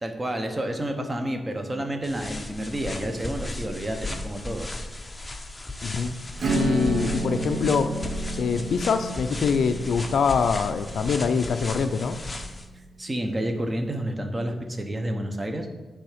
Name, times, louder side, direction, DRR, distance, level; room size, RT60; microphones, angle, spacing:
voice 1, 0.0-4.7 13.0-15.7, right 1 dB, 20° right, 5 dB, 0.8 m, -30 dB
sound 1, 2.0-12.7, left 2 dB, 20° left, 0.6 m, -35 dB
voice 2, 5.8-6.1 6.5-7.9 8.4-12.2, left 5 dB, 70° left, 9 dB, 0.4 m, -24 dB
Acoustic guitar / Strum, 6.4-12.6, right 3 dB, 55° right, 0.7 m, -32 dB
9.4 x 3.5 x 5.0 m, 1.2 s
wide cardioid pair, 120°, 0 cm